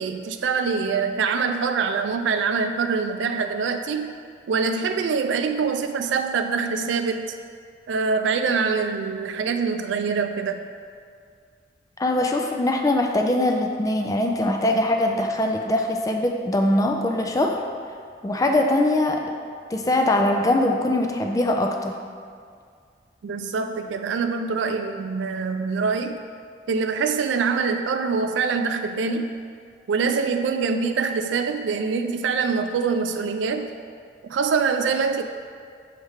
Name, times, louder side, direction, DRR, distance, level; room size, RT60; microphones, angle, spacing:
voice 1, 0.0-4.1 4.5-7.3 7.9-10.7 23.2-26.2 26.7-29.4 29.9-33.7 34.3-35.2, right 5 dB, 80° right, 6 dB, 0.4 m, -24 dB
voice 2, 12.0-17.6 18.2-19.2 19.7-21.9, left 1 dB, 20° left, 3 dB, 0.3 m, -22 dB
6.5 x 3.3 x 4.7 m, 2.2 s
head